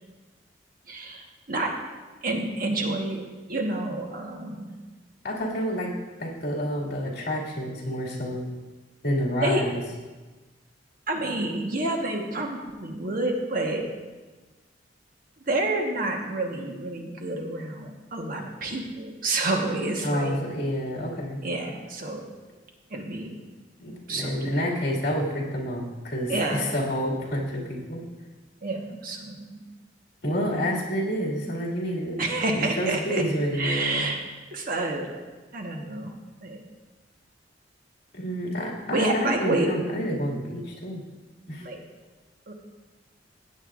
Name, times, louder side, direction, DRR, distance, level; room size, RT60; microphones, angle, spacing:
voice 1, 0.9-1.7 2.2-3.2 3.5-4.7 9.4-9.6 11.1-13.8 15.5-20.4 21.4-22.3 22.9-23.4 24.1-24.4 26.3-26.6 28.6-29.6 32.2-33.2 33.5-34.2 34.5-35.2 35.5-36.1 36.4-36.6 38.9-39.7 41.6-41.8 42.5-42.6, right 2 dB, 50° right, 1 dB, 1.2 m, -28 dB
voice 2, 5.2-5.9 6.2-8.5 9.0-9.7 20.0-21.4 23.8-28.0 30.2-32.2 32.6-34.1 38.1-41.0 41.5-41.6, equal, 60° left, -3 dB, 2.2 m, -28 dB
15.5 x 8.8 x 2.5 m, 1.2 s
head